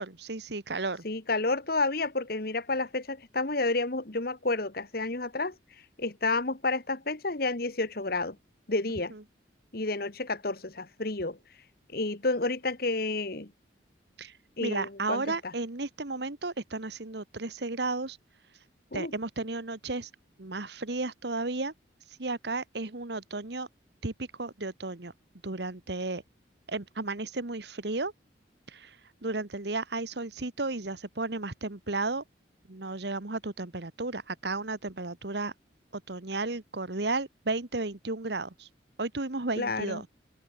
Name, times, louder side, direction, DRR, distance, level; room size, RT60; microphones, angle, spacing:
voice 1, 0.0-1.1 9.1-9.2 14.2-14.3 14.6-18.2 18.9-20.1 20.4-21.7 22.2-23.7 24.0-25.1 25.4-26.2 26.7-28.1 28.7-29.0 29.2-32.2 32.7-35.5 35.9-38.7 39.0-40.1, right 3 dB, 60° right, 1.5 m, -33 dB
voice 2, 1.0-5.5 6.0-8.4 8.7-9.1 9.7-11.4 11.9-13.5 14.6-15.5 18.9-19.1 39.6-40.0, left 3 dB, 50° left, 1.6 m, -30 dB
open air
head